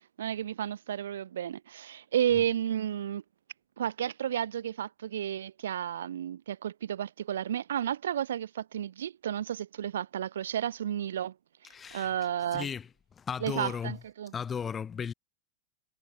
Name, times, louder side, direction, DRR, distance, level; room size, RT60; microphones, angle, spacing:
voice 1, 0.2-3.2 3.8-11.3 11.9-12.7 13.4-14.3, right 10 dB, 65° right, 0.6 m, -32 dB
voice 2, 11.7-12.1 12.5-12.9 13.2-14.0 14.3-15.1, left 7 dB, 20° left, 1.3 m, -35 dB
figure-of-eight pair, 90°, 0 cm